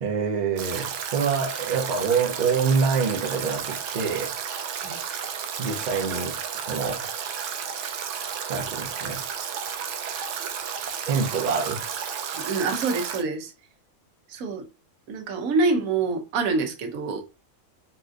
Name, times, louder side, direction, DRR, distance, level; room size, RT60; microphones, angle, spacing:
voice 1, 0.0-4.3 5.6-7.1 8.5-9.2 11.1-11.8, right 5 dB, 50° right, 0.5 m, -26 dB
Stream / Drip / Trickle dribble, 0.6-13.2, right 7 dB, 70° right, 0.8 m, -32 dB
voice 2, 12.3-13.5 14.3-14.6 15.1-17.2, right 3 dB, 90° right, 1.1 m, -26 dB
4.1 x 2.5 x 2.4 m
omnidirectional pair, 1.4 m